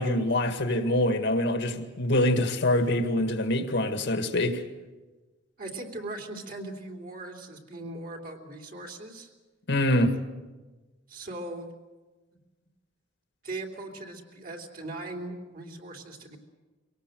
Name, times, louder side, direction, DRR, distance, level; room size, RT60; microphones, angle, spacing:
voice 1, 0.0-4.6 9.7-10.1, left 1 dB, 65° left, 1.8 m, -25 dB
voice 2, 5.6-9.3 11.1-11.7 13.4-16.4, right 2 dB, 50° right, 3.0 m, -39 dB
23.5 x 18.5 x 7.8 m
head